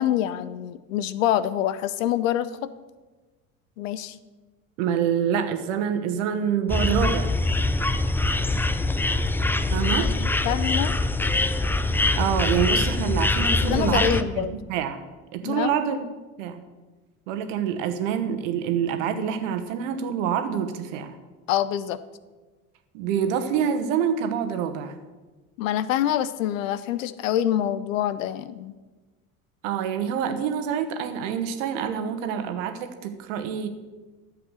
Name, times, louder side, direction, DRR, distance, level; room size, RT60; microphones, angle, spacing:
voice 1, 0.0-2.7 3.8-4.2 10.0-10.9 13.6-14.5 15.4-15.7 21.5-22.0 25.6-28.7, left 11 dB, 65° left, 15 dB, 0.7 m, -26 dB
voice 2, 4.8-7.4 9.7-10.1 12.2-15.0 15.3-16.1 16.4-16.6 17.3-21.1 22.9-24.9 29.6-33.7, right 8 dB, 60° right, 8 dB, 1.3 m, -26 dB
sound 1, 6.7-14.2, left 2 dB, 5° left, 0.5 m, -23 dB
11.5 x 7.6 x 6.4 m, 1.2 s
figure-of-eight pair, 65°, 42 cm